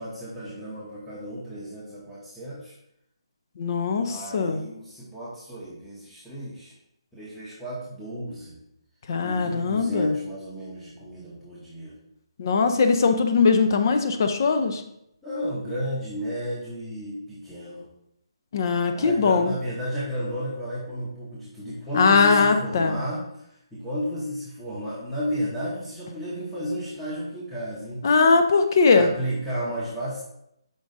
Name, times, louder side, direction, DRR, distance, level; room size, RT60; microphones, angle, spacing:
voice 1, 0.0-2.7 4.0-6.7 7.1-8.6 9.2-12.0 15.2-17.9 18.9-28.0 28.8-30.2, equal, ahead, -12 dB, 0.7 m, -33 dB
voice 2, 3.6-4.6 9.1-10.1 12.4-14.8 18.5-19.5 21.9-23.0 28.0-29.1, left 4 dB, 45° left, 7 dB, 0.5 m, -20 dB
5.2 x 2.4 x 3.8 m, 0.79 s
hypercardioid pair, 160°, 3 cm